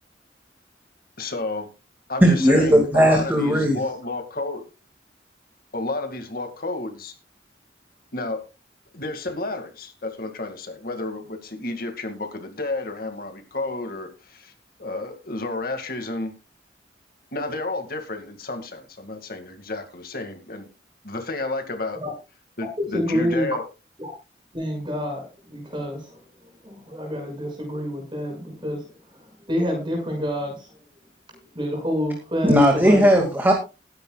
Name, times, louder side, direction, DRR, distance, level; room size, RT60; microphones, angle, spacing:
voice 1, 1.2-1.7 2.1-4.6 5.7-7.1 8.1-8.4 8.9-14.5 14.8-16.3 17.3-20.7 21.0-22.0 22.6-23.7, left 2 dB, 55° left, 6 dB, 2.2 m, -31 dB
voice 2, 2.2-3.8 32.4-33.5, equal, 10° right, 2 dB, 2.2 m, -17 dB
voice 3, 22.9-23.5 24.0-24.1 24.5-26.0 26.6-28.8 29.5-30.5 31.5-33.0, equal, 25° right, 2 dB, 6.4 m, -27 dB
20.5 x 10.5 x 2.4 m, 0.30 s
head